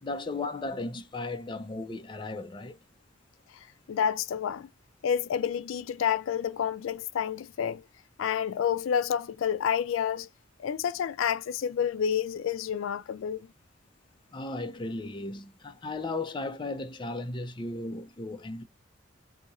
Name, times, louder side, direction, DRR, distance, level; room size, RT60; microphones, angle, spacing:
voice 1, 0.0-2.8 14.3-18.6, left 2 dB, 25° left, 0.5 m, -35 dB
voice 2, 3.9-4.7 5.0-7.8 8.2-10.3 10.6-13.5, left 8 dB, 80° left, 0.3 m, -29 dB
2.8 x 2.5 x 4.0 m
head